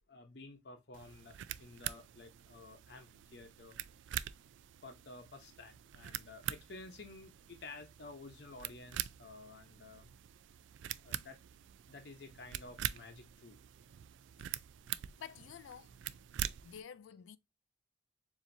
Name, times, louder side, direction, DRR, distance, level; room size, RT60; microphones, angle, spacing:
voice 1, 0.1-3.8 4.8-10.1 11.0-11.4 11.9-13.6, left 3 dB, 60° left, 0.8 m, -52 dB
sound 1, 0.9-16.8, right 12 dB, 75° right, 0.3 m, -45 dB
voice 2, 15.2-15.9 16.6-17.4, left 8 dB, 85° left, 0.4 m, -50 dB
7.0 x 2.8 x 2.6 m
head